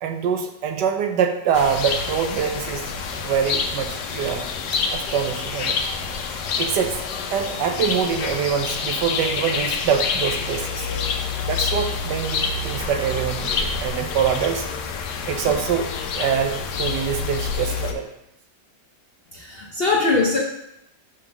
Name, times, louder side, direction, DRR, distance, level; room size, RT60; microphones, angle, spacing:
voice 1, 0.0-2.8 3.2-4.5 4.9-5.8 6.6-6.9 7.3-10.8 11.4-14.7 15.3-18.1, right 7 dB, 75° right, 5 dB, 1.3 m, -24 dB
sound 1, 1.5-17.9, left 5 dB, 70° left, 1.2 m, -27 dB
voice 2, 19.3-20.4, left 3 dB, 50° left, -3 dB, 0.7 m, -21 dB
5.8 x 3.7 x 6.0 m, 0.82 s
omnidirectional pair, 1.9 m